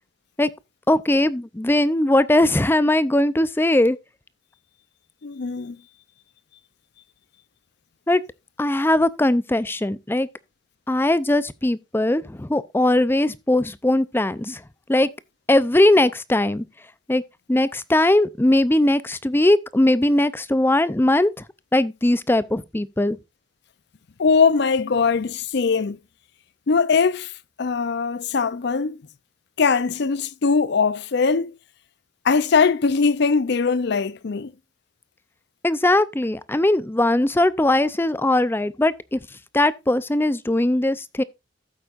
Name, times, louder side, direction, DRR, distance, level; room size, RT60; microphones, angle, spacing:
voice 1, 0.9-4.0 8.1-8.2 8.6-10.3 10.9-14.6 14.9-15.1 15.5-16.6 17.1-17.2 17.5-21.3 21.7-23.2 35.6-39.2 39.5-41.2, left 1 dB, 10° left, 0.5 m, -20 dB
voice 2, 5.2-5.8 24.2-26.0 26.7-27.3 27.6-29.0 29.6-31.5 32.2-34.5, left 5 dB, 60° left, 0.5 m, -21 dB
14.0 x 8.0 x 2.5 m
head